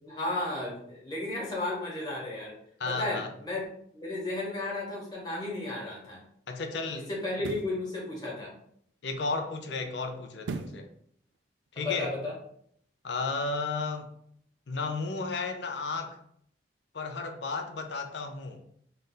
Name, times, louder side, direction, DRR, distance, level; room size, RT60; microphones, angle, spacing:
voice 1, 0.0-2.5 2.9-3.6 3.9-6.2 7.1-8.5 11.7-12.3, left 2 dB, 20° left, 1.3 m, -33 dB
voice 2, 2.8-3.3 6.5-7.4 9.0-10.9 11.7-12.2 13.0-14.1 14.7-16.2 16.9-18.6, left 4 dB, 75° left, 0.6 m, -33 dB
sound 1, 5.6-5.7 7.3-7.8 10.4-10.9 11.3-11.4, right 4 dB, 80° right, 0.3 m, -37 dB
3.3 x 2.6 x 3.8 m
head